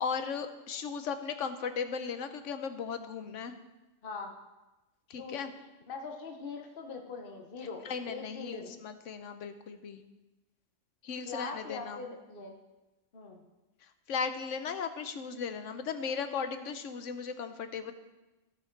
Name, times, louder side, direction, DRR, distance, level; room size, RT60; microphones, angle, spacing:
voice 1, 0.0-3.6 5.1-5.5 7.8-10.0 11.0-12.2 13.8-17.9, left 6 dB, 75° left, 9 dB, 1.1 m, -36 dB
voice 2, 5.2-8.7 11.3-12.6 13.1-13.4, left 4 dB, 50° left, 3 dB, 1.2 m, -42 dB
16.0 x 5.8 x 4.5 m, 1.1 s
omnidirectional pair, 1.3 m